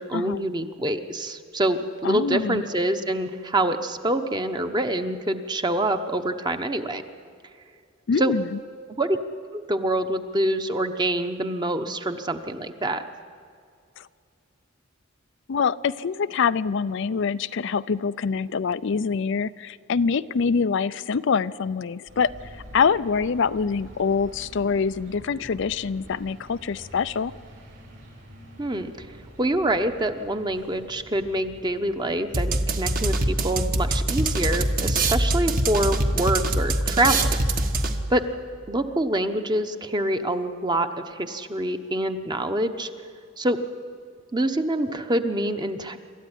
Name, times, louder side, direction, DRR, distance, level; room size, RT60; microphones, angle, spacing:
voice 1, 0.0-7.0 8.2-8.3 9.0-9.2 9.5-13.0 28.6-29.1 29.4-37.4 38.1-38.2 38.7-42.9 43.4-43.6 44.3-46.0, right 1 dB, 20° right, 7 dB, 1.0 m, -26 dB
voice 2, 2.0-2.6 8.1-8.5 14.0-14.1 15.5-27.3, left 5 dB, 60° left, 14 dB, 0.4 m, -25 dB
sound 1, 22.1-36.3, equal, 60° right, 7.7 m, -47 dB
sound 2, 32.3-38.2, right 2 dB, 45° right, 1.4 m, -24 dB
26.5 x 13.5 x 9.9 m, 2.4 s
head